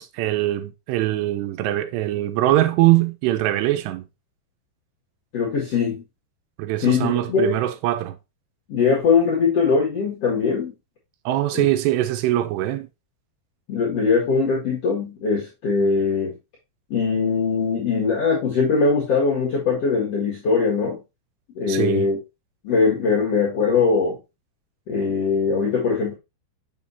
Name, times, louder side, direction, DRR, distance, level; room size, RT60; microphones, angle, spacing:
voice 1, 0.0-4.0 6.6-8.2 11.3-12.9 21.7-22.1, right 15 dB, 80° right, 2.7 m, -22 dB
voice 2, 5.3-6.0 6.8-7.6 8.7-10.7 11.5-11.6 13.7-16.3 16.9-21.0 21.6-22.2 22.6-24.2 24.9-26.1, left 5 dB, 50° left, 2.1 m, -21 dB
7.3 x 6.6 x 2.7 m
omnidirectional pair, 5.1 m